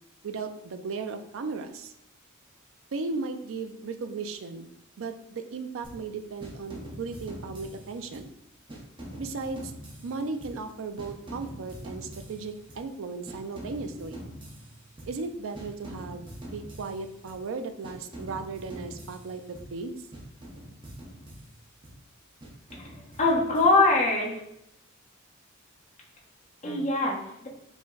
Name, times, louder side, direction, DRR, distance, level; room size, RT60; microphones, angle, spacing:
voice 1, 0.2-1.9 2.9-4.7 5.0-8.3 9.2-9.7 10.0-14.2 15.1-19.9, right 4 dB, 65° right, 8 dB, 0.4 m, -36 dB
sound 1, 5.8-6.1 6.4-8.4 8.7-10.7 11.0-12.9 13.3-15.3 15.5-17.5 17.8-19.8 20.1-22.0 22.4-24.1, equal, 25° right, 0.8 m, -44 dB
voice 2, 22.7-24.4 26.6-27.5, left 2 dB, 35° left, -3 dB, 1.1 m, -23 dB
4.9 x 2.2 x 3.8 m, 0.79 s
head